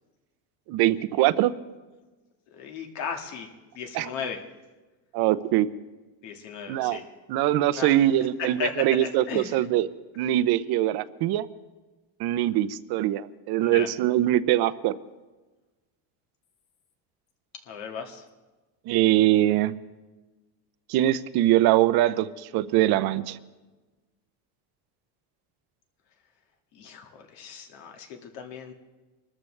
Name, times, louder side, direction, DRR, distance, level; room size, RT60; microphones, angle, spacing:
voice 1, 0.7-1.5 3.9-4.1 5.1-5.7 6.7-7.0 7.3-9.9 10.2-11.5 12.2-14.9 18.9-19.7 20.9-23.4, right 14 dB, 60° right, 15 dB, 0.7 m, -23 dB
voice 2, 2.5-4.4 6.2-7.0 7.7-7.9 8.6-8.7 9.0-9.6 13.6-13.9 17.7-18.2 26.7-28.7, left 6 dB, 80° left, 3 dB, 2.0 m, -36 dB
25.0 x 13.5 x 3.3 m, 1.2 s
cardioid pair, 140°, 42 cm